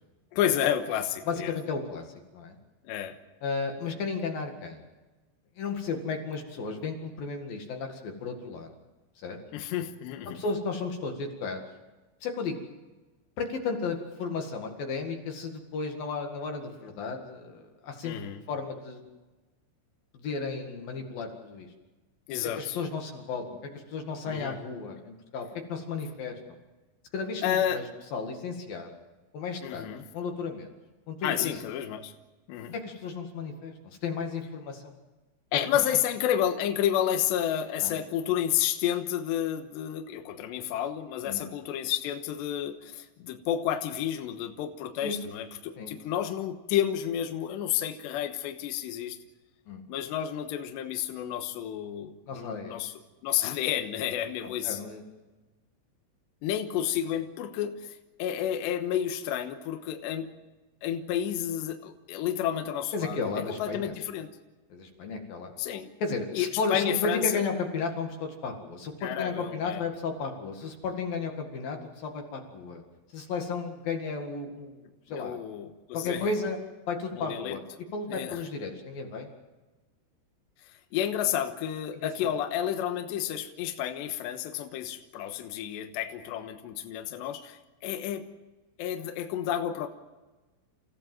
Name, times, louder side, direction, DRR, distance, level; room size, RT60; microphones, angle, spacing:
voice 1, 0.3-1.5 2.8-3.2 9.5-10.4 18.0-18.4 22.3-22.8 24.3-24.6 27.4-27.8 29.6-30.0 31.2-32.1 32.5-32.7 35.5-49.2 49.9-52.9 53.2-54.8 56.4-60.3 60.8-63.3 63.6-64.3 65.6-65.9 66.3-67.4 69.0-69.8 75.1-76.3 77.1-77.6 78.1-78.4 80.6-88.3 88.8-89.9, left 10 dB, 75° left, 6 dB, 3.1 m, -30 dB
voice 2, 1.3-2.6 3.4-4.8 5.6-8.7 9.2-9.4 10.3-11.6 12.2-12.6 13.4-18.2 18.5-19.0 20.1-21.7 22.6-26.6 27.1-27.8 28.1-28.9 29.3-29.9 30.1-30.7 31.1-31.5 32.7-34.9 37.8-38.0 41.2-41.4 45.0-45.2 45.8-45.9 49.7-49.8 52.3-52.8 54.4-55.0 62.9-63.9 64.7-65.5 66.0-72.8 73.1-74.8 75.1-75.4 75.9-76.6 76.9-77.6 77.9-79.3 82.0-82.3, left 4 dB, 55° left, 3 dB, 3.2 m, -34 dB
29.0 x 15.5 x 7.6 m, 1.2 s
omnidirectional pair, 5.6 m